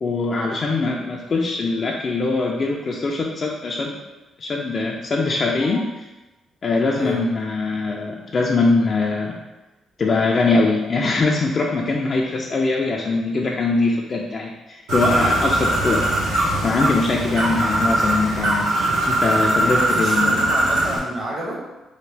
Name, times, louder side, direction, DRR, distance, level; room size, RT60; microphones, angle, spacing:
voice 1, 0.0-4.0 4.4-6.1 6.6-9.4 10.0-16.4 16.6-20.4, left 3 dB, 45° left, -2 dB, 0.3 m, -22 dB
voice 2, 5.5-5.9 6.9-7.2 19.6-21.6, equal, 35° right, -3 dB, 0.9 m, -29 dB
Bird, 14.9-21.0, right 1 dB, 85° right, 1.1 m, -21 dB
3.4 x 2.2 x 3.3 m, 1.1 s
cardioid pair, 90°, 0 cm